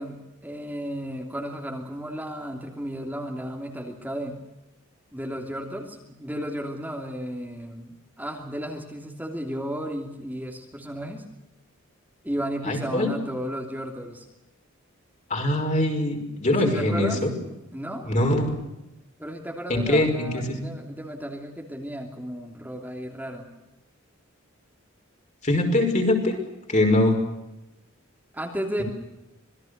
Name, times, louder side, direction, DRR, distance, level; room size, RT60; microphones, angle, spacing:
voice 1, 0.0-4.4 5.1-11.2 12.2-14.2 16.6-17.2 17.7-18.1 19.2-23.5 28.3-28.8, equal, 10° right, 0 dB, 3.0 m, -34 dB
voice 2, 12.6-13.1 15.3-17.3 18.0-18.5 19.7-20.7 25.4-26.4 26.7-27.2, left 1 dB, 35° left, 3 dB, 5.4 m, -22 dB
27.0 x 21.5 x 6.7 m, 0.94 s
head